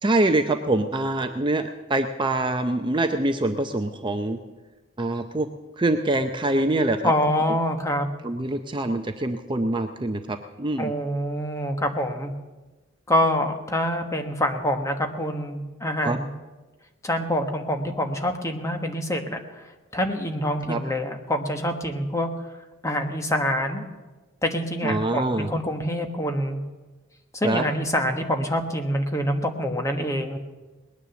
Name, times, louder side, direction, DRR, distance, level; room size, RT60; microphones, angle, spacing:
voice 1, 0.0-4.4 5.0-5.5 5.8-7.1 8.2-10.9 16.0-16.2 20.7-20.8 24.8-25.5 27.4-27.6, right 2 dB, 25° right, 6 dB, 0.6 m, -24 dB
voice 2, 7.0-8.1 10.8-12.3 13.1-16.3 17.0-19.6 19.9-22.3 22.8-23.9 24.4-26.6 27.3-30.4, equal, 15° left, 4 dB, 1.2 m, -26 dB
20.0 x 9.9 x 7.0 m, 1.2 s
head